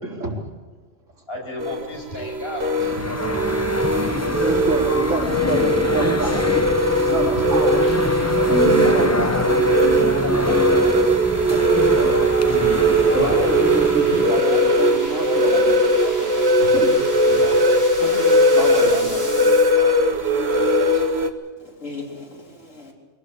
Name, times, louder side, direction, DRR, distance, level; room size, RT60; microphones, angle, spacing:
voice 1, 0.0-0.4 3.6-3.7 4.1-6.4 6.8-7.7 8.5-9.4 12.0-12.1 13.1-15.8 16.6-16.9 18.6-19.1, right 2 dB, 80° right, -1 dB, 4.6 m, -27 dB
voice 2, 1.3-3.3 6.8-7.0 7.4-7.5 7.8-9.3 9.5-10.6 13.2-13.5 14.4-16.4 17.1-18.3 18.9-19.9, equal, 50° left, 0 dB, 6.9 m, -35 dB
sound 1, 1.6-21.3, right 1 dB, 55° right, 1.8 m, -19 dB
sound 2, 2.8-14.4, left 2 dB, 15° left, 0.8 m, -26 dB
voice 3, 4.4-4.7 8.0-8.2 11.5-12.4 18.0-19.2 20.9-21.0 21.6-22.9, left 1 dB, 85° left, 1 dB, 4.0 m, -34 dB
sound 3, 7.3-19.7, equal, 15° right, 5.2 m, -39 dB
23.5 x 17.5 x 8.3 m, 1.4 s
omnidirectional pair, 1.3 m